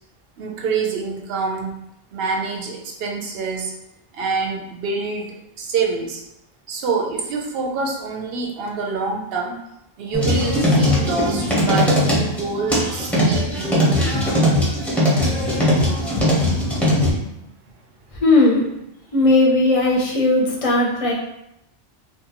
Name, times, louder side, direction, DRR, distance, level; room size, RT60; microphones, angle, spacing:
voice 1, 0.4-1.8 2.1-3.7 4.2-6.2 6.7-9.6 10.0-14.2, right 4 dB, 70° right, 0 dB, 0.8 m, -26 dB
sound 1, 10.1-17.1, left 1 dB, ahead, 0.6 m, -19 dB
voice 2, 16.1-17.3 18.2-18.6 19.1-21.1, left 2 dB, 45° left, -2 dB, 0.5 m, -18 dB
2.5 x 2.1 x 2.8 m, 0.82 s
omnidirectional pair, 1.1 m